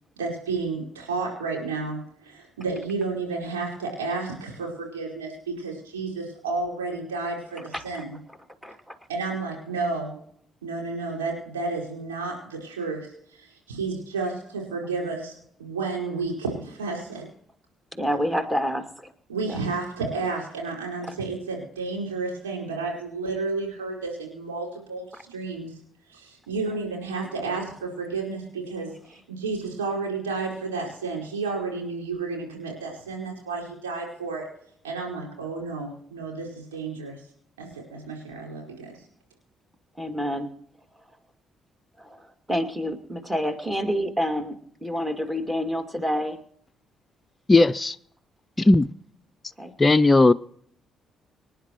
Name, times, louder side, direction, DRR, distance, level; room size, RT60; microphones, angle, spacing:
voice 1, 0.2-8.1 9.1-10.2 10.6-17.3 19.3-25.7 26.1-34.5 34.8-37.2 37.6-39.0, right 3 dB, 80° right, 4.6 m, -31 dB
voice 2, 7.7-8.0 8.3-8.4 8.6-9.0 17.9-19.1 19.5-19.6 25.1-25.2 40.0-40.5 42.0-46.4 49.6-49.7, equal, 15° right, 2.5 m, -28 dB
voice 3, 47.5-48.0 48.6-48.9 49.8-50.3, left 2 dB, 20° left, 0.4 m, -16 dB
25.5 x 10.0 x 3.1 m
figure-of-eight pair, 45°, 0 cm